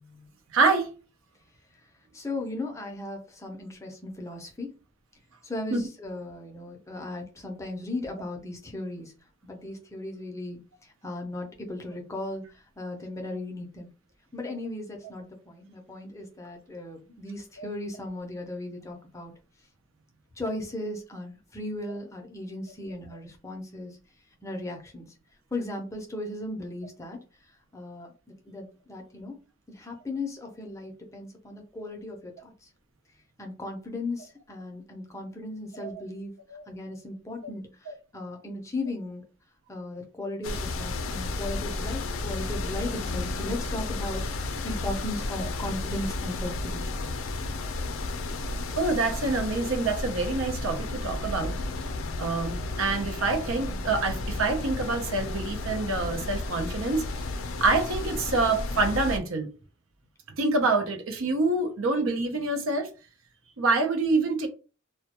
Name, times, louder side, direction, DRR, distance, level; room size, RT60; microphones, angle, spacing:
voice 1, 0.5-0.9 5.7-5.8 17.6-17.7 35.8-36.0 36.5-36.6 37.9-38.0 48.8-51.5 52.2-57.0 57.6-59.5 60.4-62.9 63.6-64.5, right 3 dB, 80° right, 0.6 m, -26 dB
voice 2, 2.1-4.8 5.4-9.1 9.4-10.6 11.0-13.9 14.3-19.3 20.4-24.0 24.4-25.1 25.5-27.2 27.7-28.1 28.5-29.4 29.7-32.5 33.4-36.3 36.7-39.2 39.7-47.4, left 2 dB, 15° left, 0.5 m, -37 dB
sound 1, 40.4-59.2, left 2 dB, 75° left, 0.4 m, -33 dB
2.2 x 2.1 x 2.8 m
head